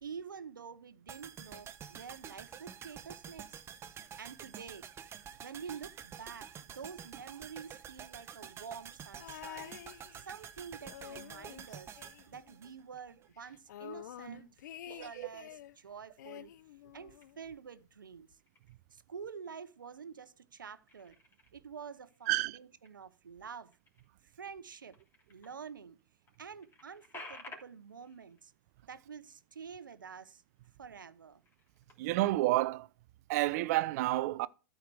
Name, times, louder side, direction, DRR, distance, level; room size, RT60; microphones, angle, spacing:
voice 1, 0.0-3.6 3.9-4.9 5.4-9.8 10.1-12.0 12.3-14.5 14.9-16.5 16.9-18.4 18.9-21.2 21.5-23.7 24.2-25.0 25.3-26.0 26.4-28.5 28.9-30.4 30.8-31.4, right 6 dB, 80° right, 0.9 m, -48 dB
sound 1, 1.1-13.3 13.5-13.6, right 8 dB, 25° right, 0.9 m, -49 dB
sound 2, 9.2-10.5 10.8-12.7 13.0-13.1 13.4-15.8 16.2-17.4 18.3-18.4, left 12 dB, 60° left, 0.5 m, -49 dB
sound 3, 17.2-17.8 18.3-18.9 19.4-20.1 20.4-25.6 26.0-26.1 26.3-30.3 30.6-30.8 31.3-32.3, left 2 dB, 25° left, 3.4 m, -56 dB
voice 2, 22.3-22.6 32.0-32.9 33.3-34.5, right 17 dB, 50° right, 0.6 m, -30 dB
13.0 x 5.0 x 4.7 m
hypercardioid pair, 105°, 11 cm